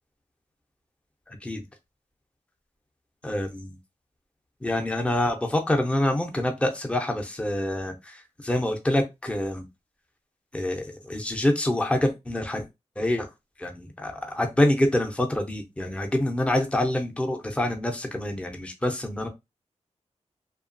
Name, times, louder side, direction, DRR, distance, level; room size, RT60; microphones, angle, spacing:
voice 1, 1.3-1.6 3.2-3.8 4.6-9.7 10.5-12.7 13.0-13.3 13.6-19.3, left 1 dB, 10° left, 3 dB, 0.5 m, -26 dB
2.8 x 2.2 x 2.5 m, 0.22 s
wide cardioid pair, 95°, 12 cm